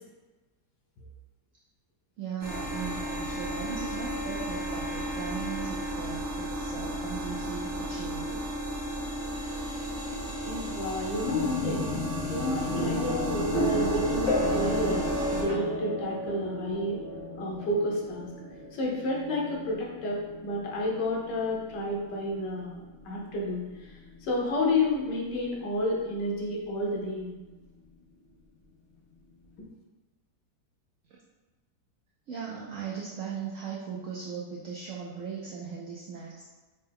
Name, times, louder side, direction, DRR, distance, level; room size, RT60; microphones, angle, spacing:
voice 1, 2.2-8.4 32.3-36.5, right 6 dB, 70° right, -4 dB, 0.7 m, -38 dB
sound 1, 2.4-15.4, right 1 dB, 40° right, 0.8 m, -34 dB
voice 2, 10.4-17.0 17.4-18.3 18.7-27.3, left 1 dB, 85° left, -3 dB, 1.5 m, -31 dB
sound 2, 11.3-25.0, left 1 dB, 45° left, 1.4 m, -33 dB
4.3 x 2.2 x 3.4 m, 1.2 s
omnidirectional pair, 1.8 m